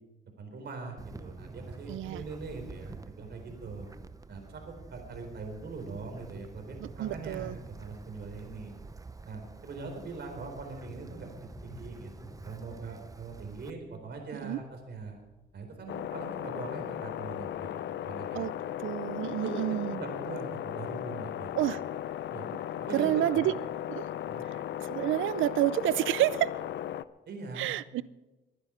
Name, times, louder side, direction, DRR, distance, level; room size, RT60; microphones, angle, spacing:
voice 1, 0.4-3.9 4.3-8.7 9.3-15.2 15.5-17.7 18.1-18.5 19.4-19.6 19.9-21.7 22.3-22.5 22.8-23.5 24.3-24.4 27.3-27.7, right 3 dB, 55° right, 3 dB, 4.0 m, -42 dB
Wind, 1.0-13.7, right 3 dB, 15° right, 0.6 m, -48 dB
voice 2, 1.9-2.2 6.8-7.6 14.4-14.6 18.3-18.5 18.8-20.0 21.5-21.8 22.9-23.5 23.9-24.1 24.9-26.5 27.6-28.0, right 14 dB, 80° right, 19 dB, 0.5 m, -29 dB
sound 1, 10.7-16.1 16.6-16.7 17.2-17.3, left 1 dB, 10° left, 2.3 m, -51 dB
sound 2, 15.9-27.0, left 11 dB, 65° left, 0.5 m, -36 dB
21.5 x 9.8 x 5.0 m, 1.1 s
cardioid pair, 90°, 20 cm